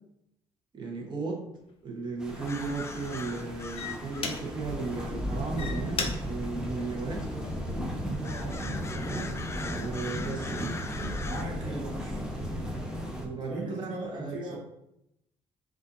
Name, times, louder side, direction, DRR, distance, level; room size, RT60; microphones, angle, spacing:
voice 1, 0.7-1.5 1.8-7.2 9.8-10.8 13.2-14.6, right 3 dB, 40° right, -1 dB, 1.0 m, -35 dB
sound 1, 1.6-1.7 2.3-2.6 3.4-3.5 3.8-4.8 5.4-7.7 8.3-8.7, left 4 dB, 50° left, 0.7 m, -37 dB
sound 2, 2.2-13.3, equal, 5° right, 0.8 m, -35 dB
sound 3, 2.5-11.4, left 3 dB, 20° left, 0.3 m, -43 dB
voice 2, 8.2-8.7 11.2-12.2 13.4-14.6, right 1 dB, 70° right, -2 dB, 1.3 m, -40 dB
5.4 x 2.6 x 2.6 m, 0.82 s
cardioid pair, 75°, 12 cm